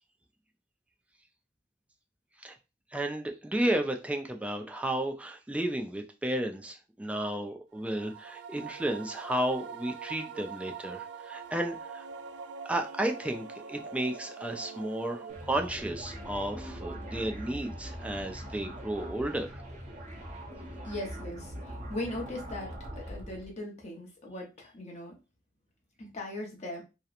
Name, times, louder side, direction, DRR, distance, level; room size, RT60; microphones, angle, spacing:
voice 1, 2.9-12.0 12.7-19.6, right 1 dB, 10° right, 0.3 m, -33 dB
sound 1, 7.8-15.9, right 6 dB, 85° right, 0.3 m, -44 dB
sound 2, 15.3-23.5, equal, 40° right, 0.7 m, -42 dB
voice 2, 20.8-22.7 23.0-25.2 26.0-26.8, left 1 dB, 40° left, 0.7 m, -39 dB
2.8 x 2.1 x 2.4 m
head